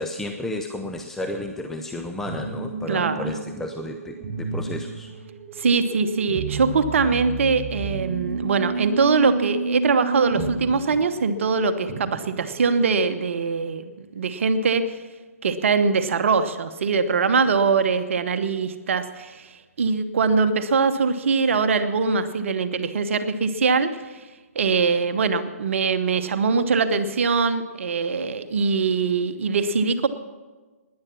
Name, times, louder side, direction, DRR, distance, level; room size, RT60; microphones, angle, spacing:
voice 1, 0.0-5.1, left 1 dB, 5° left, 3 dB, 0.6 m, -32 dB
sound 1, 2.3-13.1, right 4 dB, 25° right, 4.7 m, -31 dB
voice 2, 2.9-3.3 5.6-15.0 15.4-19.5 19.8-24.2 24.5-30.1, right 4 dB, 55° right, 10 dB, 1.0 m, -22 dB
17.5 x 10.5 x 5.9 m, 1.3 s
figure-of-eight pair, 130°, 8 cm